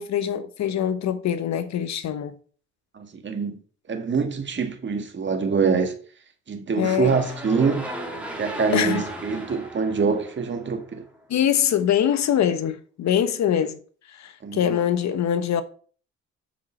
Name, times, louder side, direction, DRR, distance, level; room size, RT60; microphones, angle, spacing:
voice 1, 0.0-2.3 6.8-7.1 8.7-9.0 11.3-13.8 14.1-15.6, left 9 dB, 65° left, 1.1 m, -23 dB
voice 2, 2.9-3.6 3.9-5.9 6.5-7.8 8.4-11.0 14.4-14.8, right 5 dB, 40° right, 1.7 m, -25 dB
sound 1, 6.8-11.0, right 1 dB, 5° right, 2.7 m, -36 dB
7.3 x 6.3 x 4.4 m
cardioid pair, 90°, 30 cm